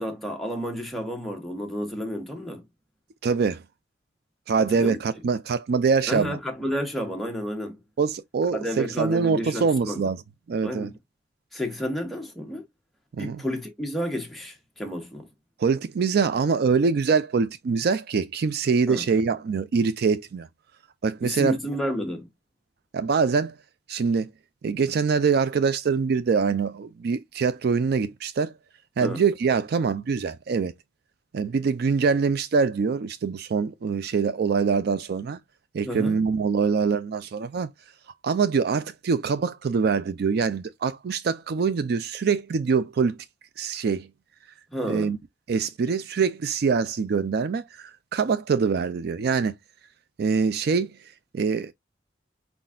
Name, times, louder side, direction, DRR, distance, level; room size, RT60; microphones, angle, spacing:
voice 1, 0.0-2.6 4.7-5.0 6.1-7.8 8.5-10.1 10.6-11.0 11.5-12.6 13.2-15.2 18.9-19.0 21.2-22.3 29.0-29.2 35.8-36.2 44.7-45.1, equal, ahead, 1.2 m, -31 dB
voice 2, 3.2-3.6 4.5-6.4 8.0-10.2 10.5-10.9 13.1-13.4 15.6-20.5 21.0-21.6 22.9-23.5 23.9-24.3 24.6-28.5 29.0-30.7 31.3-35.4 35.7-37.7 38.2-43.2 43.6-44.1 44.9-45.2 45.5-49.5 50.2-50.9 51.3-51.7, right 5 dB, 60° right, 0.4 m, -24 dB
4.6 x 4.0 x 2.4 m
head